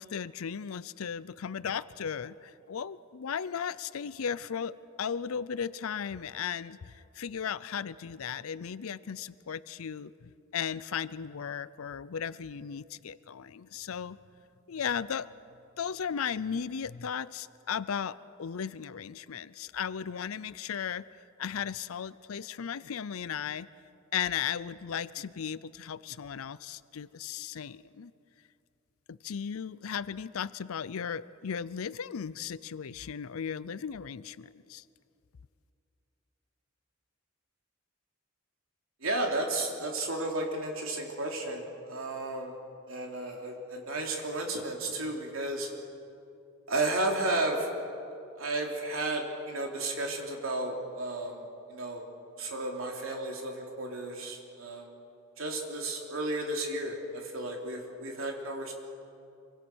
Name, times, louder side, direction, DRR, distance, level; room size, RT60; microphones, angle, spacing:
voice 1, 0.0-14.2 14.7-15.3 15.8-21.0 21.4-23.7 24.1-28.1 29.1-34.8, left 7 dB, 80° left, 17 dB, 0.5 m, -36 dB
voice 2, 39.0-42.6 42.9-45.7 46.7-47.8 48.4-52.1 52.4-54.9 55.4-58.7, right 2 dB, 70° right, 1 dB, 3.5 m, -33 dB
26.0 x 24.5 x 6.3 m, 2.6 s
head